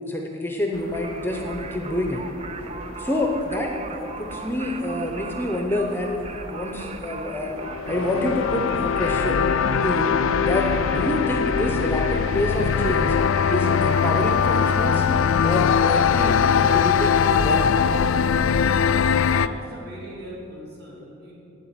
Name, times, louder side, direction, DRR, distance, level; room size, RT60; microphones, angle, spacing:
voice 1, 0.0-2.2 3.0-7.6 7.9-9.5 9.8-10.1 10.4-13.2 13.5-15.0 15.4-17.8, left 1 dB, 10° left, 1 dB, 0.7 m, -27 dB
sound 1, 0.7-11.0, equal, 85° right, 2.0 m, -41 dB
Singing, 0.9-14.7, right 4 dB, 30° right, 0.5 m, -38 dB
sound 2, 7.5-19.5, left 6 dB, 65° left, 0.4 m, -21 dB
voice 2, 19.2-21.3, equal, 50° right, -5 dB, 3.3 m, -40 dB
8.9 x 8.3 x 8.9 m, 2.8 s
head